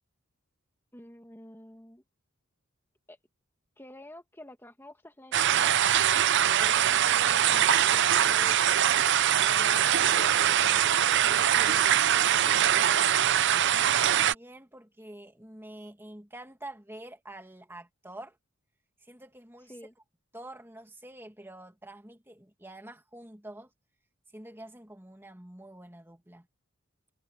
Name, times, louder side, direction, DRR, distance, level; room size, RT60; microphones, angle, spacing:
voice 1, 0.9-2.0 3.1-3.2 3.8-5.8 6.4-8.8 9.4-11.0 11.3-13.2 19.7-19.9, left 1 dB, 10° left, 2.1 m, -48 dB
sound 1, 5.3-14.3, right 10 dB, 55° right, 0.6 m, -23 dB
voice 2, 13.7-18.4 19.0-19.7 20.3-23.7 24.3-26.5, right 1 dB, 10° right, 2.1 m, -47 dB
head